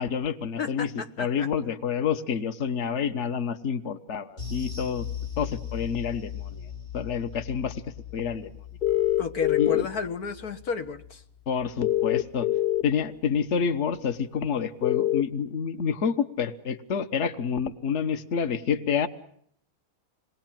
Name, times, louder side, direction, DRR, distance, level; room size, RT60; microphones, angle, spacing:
voice 1, 0.0-0.9 1.2-5.0 5.4-7.8 8.1-8.5 9.6-9.9 11.5-12.5 12.8-19.1, left 7 dB, 55° left, 9 dB, 1.4 m, -28 dB
voice 2, 0.6-1.5 9.2-11.2, left 5 dB, 90° left, 7 dB, 2.0 m, -32 dB
sound 1, 4.4-13.0 13.3-13.5 13.9-14.0, left 8 dB, 70° left, 5.9 m, -40 dB
sound 2, 8.8-9.8 11.8-12.8 14.8-15.2, left 14 dB, 35° left, 1.1 m, -23 dB
27.0 x 21.0 x 7.5 m, 0.68 s
omnidirectional pair, 1.5 m